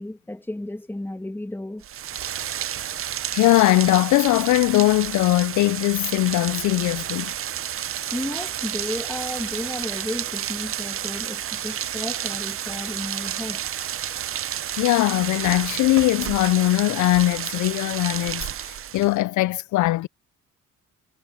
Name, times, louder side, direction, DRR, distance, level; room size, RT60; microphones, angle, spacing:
voice 1, 0.0-1.9 8.1-13.7, left 1 dB, 5° left, 1.7 m, -33 dB
Rain, 1.8-19.2, right 10 dB, 45° right, 0.6 m, -31 dB
voice 2, 3.3-7.3 14.7-20.1, left 17 dB, 75° left, 0.5 m, -20 dB
cardioid pair, 90°, 30 cm